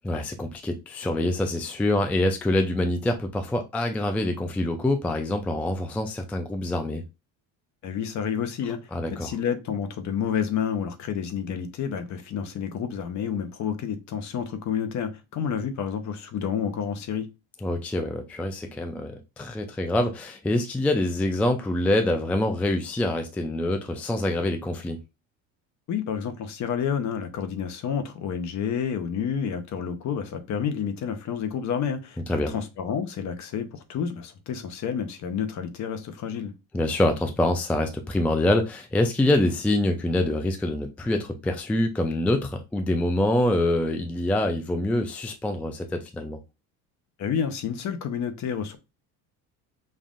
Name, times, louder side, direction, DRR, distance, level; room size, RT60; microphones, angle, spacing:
voice 1, 0.0-7.0 8.9-9.3 17.6-25.0 32.3-32.5 36.7-46.4, left 1 dB, 5° left, 0.3 m, -25 dB
voice 2, 7.8-8.8 9.1-17.3 25.9-36.5 47.2-48.8, left 7 dB, 50° left, 0.8 m, -29 dB
5.4 x 2.5 x 2.5 m
cardioid pair, 120°, 37 cm